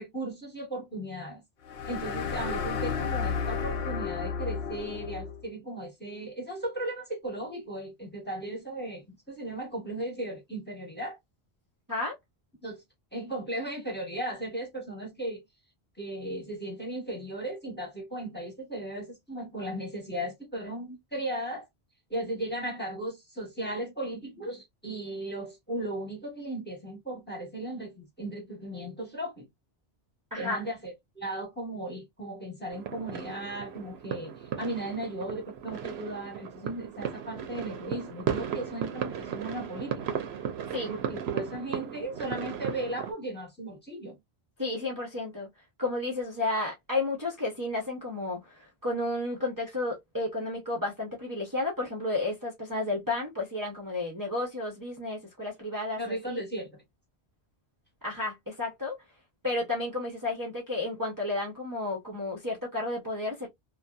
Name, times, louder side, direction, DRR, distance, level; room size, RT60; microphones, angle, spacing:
voice 1, 0.0-1.4 1.9-11.2 12.6-12.8 13.1-15.4 16.0-21.7 22.1-29.5 30.4-40.2 40.9-44.2 56.0-56.7, right 1 dB, 10° left, 1.0 m, -36 dB
sound 1, 1.6-5.4, left 6 dB, 75° left, 0.8 m, -32 dB
voice 2, 30.3-30.6 40.7-40.9 44.6-45.5 45.8-56.4 58.0-59.0 59.4-63.5, left 2 dB, 20° right, 0.7 m, -32 dB
sound 2, 32.7-43.1, right 8 dB, 80° right, 0.8 m, -36 dB
2.6 x 2.2 x 2.2 m
omnidirectional pair, 1.1 m